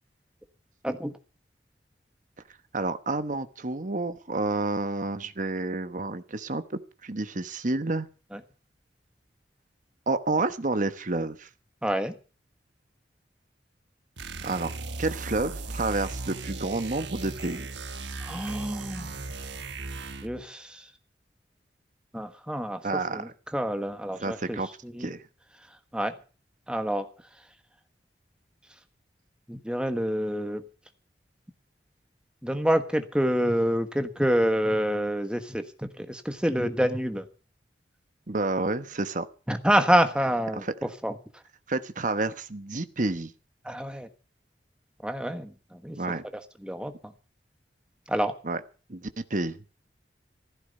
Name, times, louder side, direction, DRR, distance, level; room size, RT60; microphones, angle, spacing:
voice 1, 2.7-8.1 10.1-11.5 14.4-14.7 15.0-17.6 22.8-23.3 24.2-24.7 25.0-25.2 38.3-39.3 40.5-40.7 41.7-43.3 46.0-46.2 48.4-48.6 48.9-49.6, right 2 dB, 45° right, 11 dB, 1.1 m, -29 dB
voice 2, 11.8-12.1 18.2-19.2 20.2-20.9 22.1-22.8 23.1-24.6 24.8-25.1 25.9-26.1 26.7-27.1 29.5-30.6 32.4-37.3 39.5-41.1 43.6-44.1 45.0-46.0 46.3-47.1 48.1-48.3, equal, 5° right, 7 dB, 1.4 m, -27 dB
sound 1, 14.2-20.4, right 3 dB, 85° right, 1.4 m, -37 dB
15.5 x 13.5 x 5.4 m, 0.36 s
head